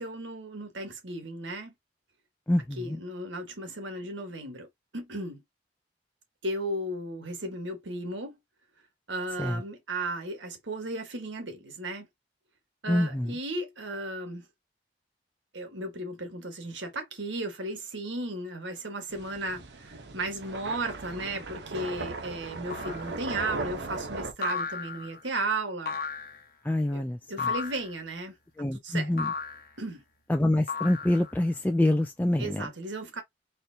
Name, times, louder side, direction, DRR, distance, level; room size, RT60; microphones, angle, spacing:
voice 1, 0.0-1.7 2.8-4.7 4.9-5.4 6.4-8.3 9.1-12.1 12.8-14.4 15.5-25.9 26.9-27.0 27.3-28.3 28.7-29.1 29.8-30.0 32.4-33.2, right 2 dB, 90° right, 1.6 m, -35 dB
voice 2, 2.5-3.0 9.4-9.6 12.9-13.3 26.6-27.5 28.6-29.3 30.3-32.7, left 1 dB, 10° left, 0.4 m, -26 dB
sound 1, 19.1-24.3, right 3 dB, 65° right, 0.9 m, -38 dB
sound 2, 22.7-23.1 24.4-25.2 25.9-26.4 27.4-27.9 29.2-29.7 30.7-31.4, left 5 dB, 50° left, 0.9 m, -34 dB
4.3 x 3.2 x 2.8 m
head